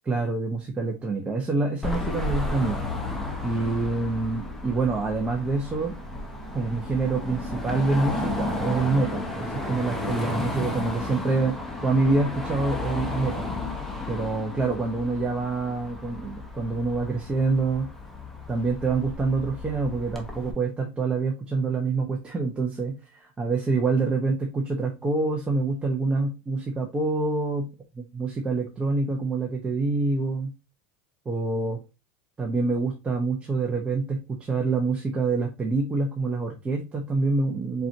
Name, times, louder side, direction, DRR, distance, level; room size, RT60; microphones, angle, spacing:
voice 1, 0.1-2.8 3.4-6.0 6.5-11.6 11.8-13.5 14.1-17.9 18.5-27.7 27.9-30.5 31.2-31.8 32.4-37.9, right 3 dB, 15° right, 0 dB, 1.0 m, -26 dB
Car passing by / Traffic noise roadway noise / Engine, 1.8-20.5, left 2 dB, 5° left, 1.1 m, -33 dB
4.5 x 3.9 x 2.8 m, 0.26 s
supercardioid pair, 120°, 7 cm